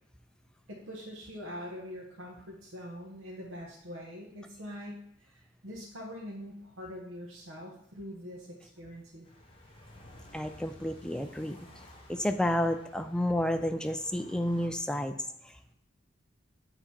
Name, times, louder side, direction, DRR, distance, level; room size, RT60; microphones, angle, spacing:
voice 1, 0.7-9.3, equal, 85° right, -3 dB, 1.0 m, -44 dB
sound 1, 9.2-14.7, left 1 dB, 25° left, 1.0 m, -54 dB
voice 2, 10.3-11.6 12.1-15.1 15.4-15.6, left 1 dB, 5° left, 7 dB, 0.3 m, -30 dB
8.9 x 3.0 x 4.3 m, 0.74 s
head